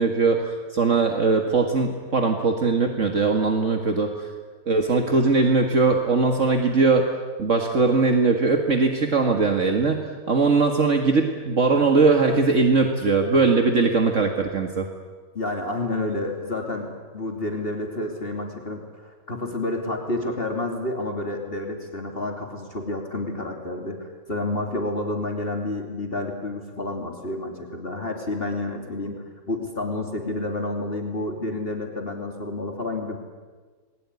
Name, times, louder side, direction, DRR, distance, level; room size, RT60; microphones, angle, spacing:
voice 1, 0.0-4.3 4.7-7.1 7.4-10.0 10.3-14.9, right 4 dB, 55° right, 4 dB, 2.3 m, -20 dB
voice 2, 15.3-33.2, left 2 dB, 40° left, 2 dB, 3.1 m, -29 dB
28.5 x 21.5 x 9.8 m, 1.4 s
omnidirectional pair, 1.5 m